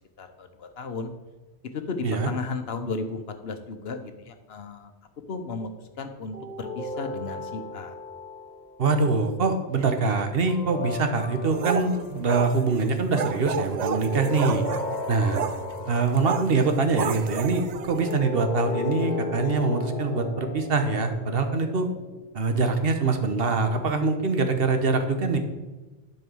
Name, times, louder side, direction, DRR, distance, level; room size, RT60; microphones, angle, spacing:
voice 1, 0.2-1.1 1.7-4.9 5.3-5.7 6.0-7.9, left 3 dB, 75° left, 7 dB, 1.2 m, -34 dB
sound 1, 6.3-8.8 10.5-12.3 13.7-16.4 17.8-22.3, left 3 dB, 45° left, 1.2 m, -35 dB
voice 2, 8.8-14.7 15.1-15.4 15.9-21.9 22.3-25.4, right 4 dB, 70° right, 7 dB, 1.2 m, -24 dB
sound 2, 11.5-18.2, right 7 dB, 55° right, 0.5 m, -32 dB
11.0 x 4.7 x 6.2 m, 1.2 s
omnidirectional pair, 1.0 m